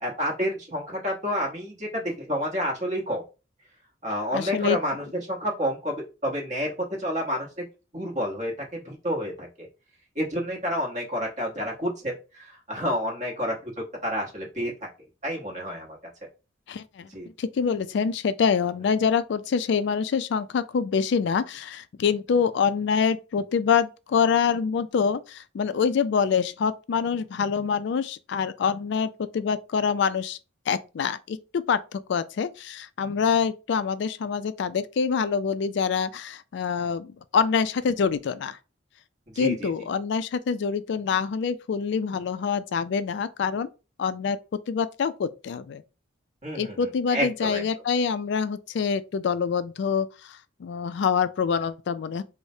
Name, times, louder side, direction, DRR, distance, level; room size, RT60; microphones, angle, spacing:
voice 1, 0.0-3.2 4.0-7.6 7.9-9.7 10.2-13.7 14.0-14.7 15.2-16.0 17.1-17.3 39.3-39.7 46.4-46.8 47.1-47.6, equal, 40° right, 1.0 m, -29 dB
voice 2, 4.3-4.8 16.7-17.1 17.4-30.4 30.7-38.6 39.4-43.7 44.0-44.4 44.7-45.8 46.5-52.2, left 6 dB, 65° left, 0.3 m, -25 dB
4.7 x 2.1 x 2.6 m
head